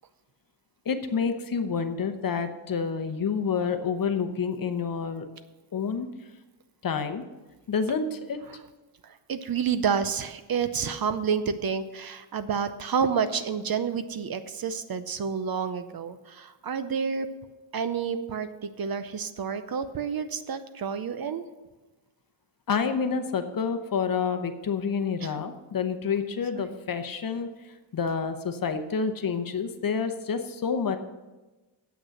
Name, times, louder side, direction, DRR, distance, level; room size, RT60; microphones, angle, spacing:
voice 1, 0.9-5.3 5.7-6.1 6.8-7.2 7.7-8.4 22.7-27.5 27.9-31.0, left 6 dB, 45° left, 8 dB, 0.8 m, -28 dB
voice 2, 9.0-17.3 17.7-21.4 25.2-25.4 26.5-26.8, right 6 dB, 50° right, 11 dB, 0.6 m, -29 dB
8.9 x 8.0 x 6.4 m, 1.1 s
wide cardioid pair, 165°, 49 cm